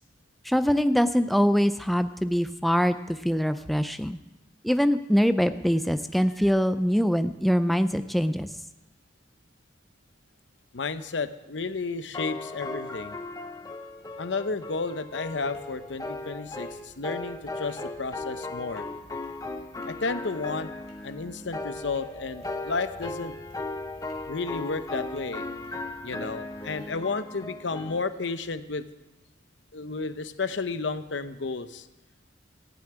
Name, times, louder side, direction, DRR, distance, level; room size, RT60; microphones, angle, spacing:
voice 1, 0.4-4.2 4.6-8.5, equal, ahead, 10 dB, 0.4 m, -23 dB
voice 2, 10.7-13.2 14.2-18.8 19.9-20.7 21.0-23.4 24.3-25.5 26.0-28.8 29.7-31.9, left 4 dB, 80° left, 11 dB, 0.8 m, -32 dB
sound 1, 12.1-28.0, left 2 dB, 20° left, 0.9 m, -37 dB
sound 2, 15.2-26.9, equal, 35° right, 2.4 m, -55 dB
15.0 x 7.1 x 9.1 m, 0.99 s
head